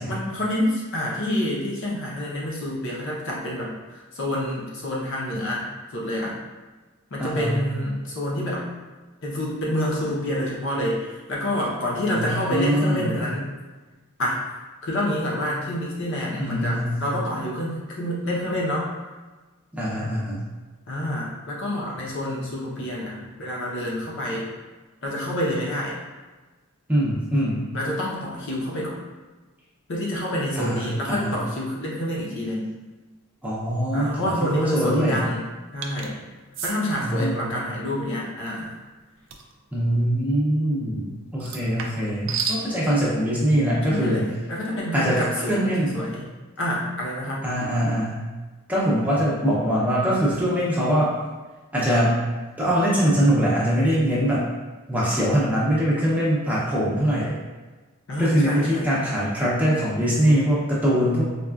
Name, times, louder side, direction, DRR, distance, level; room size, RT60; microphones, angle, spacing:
voice 1, 0.1-5.7 5.9-6.4 7.1-8.7 9.2-13.5 14.2-14.4 14.8-18.9 20.9-24.5 25.0-25.9 27.7-29.0 29.9-32.7 33.9-35.5 35.7-36.2 36.6-38.7 43.9-46.3 46.6-47.5 58.1-58.9, left 1 dB, 60° left, -4 dB, 0.7 m, -28 dB
voice 2, 7.2-7.6 12.1-13.2 16.4-17.0 19.7-20.4 26.9-27.6 30.6-31.4 33.4-35.2 37.0-37.6 39.7-44.2 44.9-46.0 47.4-48.2 48.7-51.1 51.7-52.2 52.6-54.4 54.9-57.3 58.2-61.2, equal, 5° right, -7 dB, 0.6 m, -23 dB
sound 1, 35.8-36.1 36.5-36.8 39.3-39.5 41.4-42.6, right 5 dB, 60° right, 0.3 m, -30 dB
4.1 x 2.3 x 2.3 m, 1.3 s
head